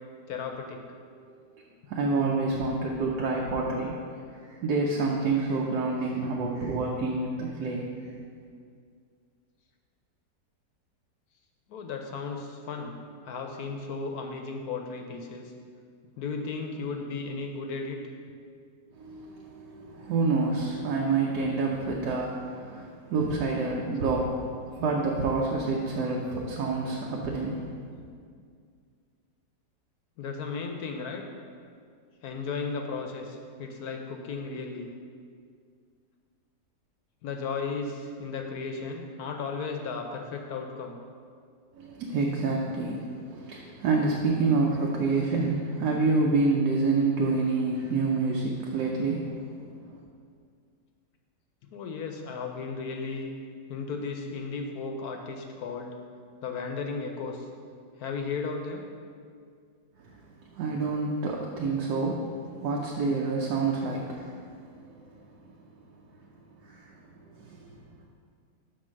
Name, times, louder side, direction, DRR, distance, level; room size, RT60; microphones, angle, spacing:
voice 1, 0.3-0.8 11.7-13.0 13.2-15.5 16.2-18.0 30.2-31.2 32.2-34.9 37.2-40.9 51.7-53.3 53.7-55.9 56.4-57.5 58.0-58.9, left 4 dB, 70° left, 3 dB, 1.0 m, -35 dB
voice 2, 1.9-3.9 4.5-7.8 19.0-24.4 24.8-27.6 41.8-49.6 49.9-50.0 60.5-62.3 62.6-64.3 66.7-66.8 67.4-67.6, right 3 dB, 75° right, -2 dB, 1.3 m, -27 dB
6.1 x 4.4 x 6.1 m, 2.2 s
omnidirectional pair, 1.9 m